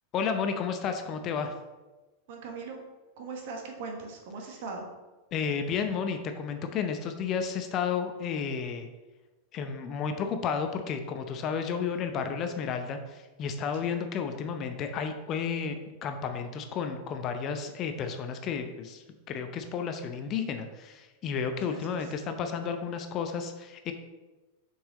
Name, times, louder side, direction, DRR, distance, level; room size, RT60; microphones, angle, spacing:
voice 1, 0.1-1.5 5.3-8.9 9.5-23.9, left 6 dB, 35° left, 7 dB, 0.6 m, -32 dB
voice 2, 2.3-2.8 3.2-4.8 13.8-14.0 21.7-22.0, right 4 dB, 50° right, 2 dB, 1.4 m, -40 dB
7.0 x 5.6 x 3.7 m, 1.2 s
figure-of-eight pair, 90°, 0 cm